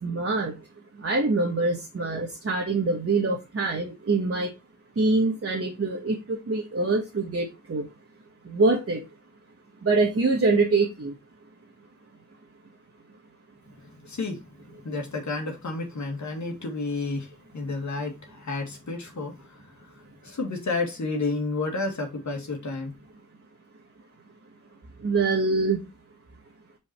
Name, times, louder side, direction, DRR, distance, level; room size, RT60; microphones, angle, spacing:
voice 1, 0.0-0.6 0.9-4.5 4.9-7.9 8.4-9.0 9.8-11.1 25.0-25.8, right 3 dB, 45° right, 1.7 m, -24 dB
voice 2, 13.7-22.9, left 3 dB, 65° left, 2.3 m, -31 dB
5.3 x 5.1 x 4.4 m
cardioid pair, 70°, 31 cm